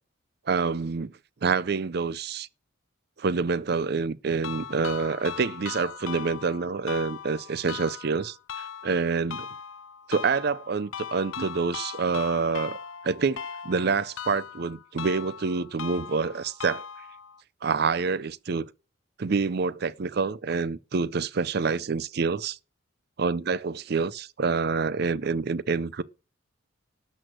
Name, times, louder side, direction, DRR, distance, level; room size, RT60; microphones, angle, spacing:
voice 1, 0.5-1.1 1.4-2.5 3.2-9.5 10.1-12.8 13.0-16.8 17.6-18.7 19.2-22.6 23.2-26.0, right 4 dB, 55° right, 0.5 m, -27 dB
sound 1, 4.4-17.4, left 7 dB, 90° left, 0.7 m, -39 dB
12.5 x 6.3 x 6.3 m
head